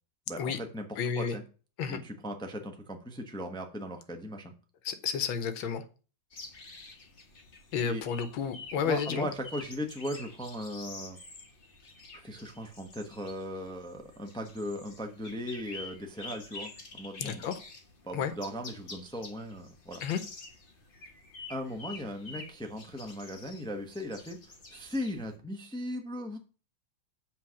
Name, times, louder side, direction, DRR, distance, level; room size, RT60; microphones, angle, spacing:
voice 1, 0.3-0.9 1.2-1.4 1.9-4.5 7.8-8.0 8.8-11.2 12.1-17.5 18.0-20.0 21.5-24.4 24.7-26.4, equal, 5° left, 0.3 m, -38 dB
voice 2, 1.0-1.3 1.8-2.0 4.8-5.8 7.7-9.3 17.2-17.5 18.1-18.3 20.0-20.2, left 7 dB, 70° left, 1.6 m, -31 dB
sound 1, 6.3-25.3, left 3 dB, 35° left, 1.1 m, -48 dB
7.7 x 4.1 x 6.3 m
omnidirectional pair, 2.3 m